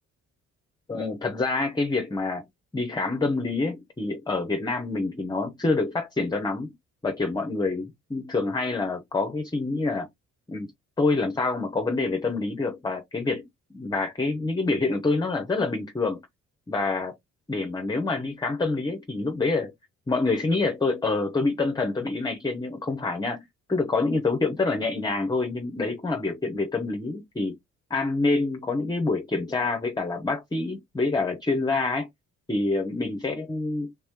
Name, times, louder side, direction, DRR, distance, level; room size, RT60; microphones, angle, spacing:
voice 1, 0.9-2.4 2.7-6.7 7.0-10.1 10.5-10.7 11.0-13.5 13.7-16.2 16.7-17.1 17.5-19.7 20.1-27.6 27.9-32.1 32.5-33.9, left 3 dB, 15° left, 0.8 m, -26 dB
3.5 x 3.0 x 3.6 m
cardioid pair, 90°, 30 cm